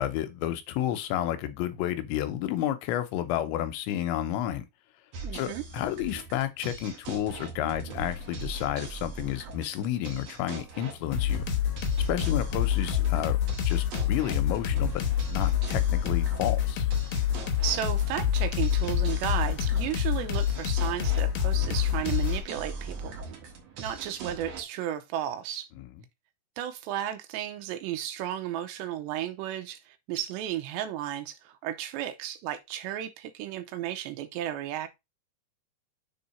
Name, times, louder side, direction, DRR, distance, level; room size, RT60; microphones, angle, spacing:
voice 1, 0.0-4.7 5.3-11.4 12.1-13.4 13.7-16.9 25.8-25.9, left 12 dB, 90° left, 3.1 m, -31 dB
sound 1, 5.1-24.6, right 3 dB, 65° right, 1.6 m, -40 dB
voice 2, 5.2-5.6 17.6-23.2 23.8-25.7 26.6-34.9, right 11 dB, 85° right, 2.8 m, -34 dB
sound 2, 11.1-22.4, left 10 dB, 65° left, 2.0 m, -27 dB
6.9 x 3.8 x 4.1 m
omnidirectional pair, 5.2 m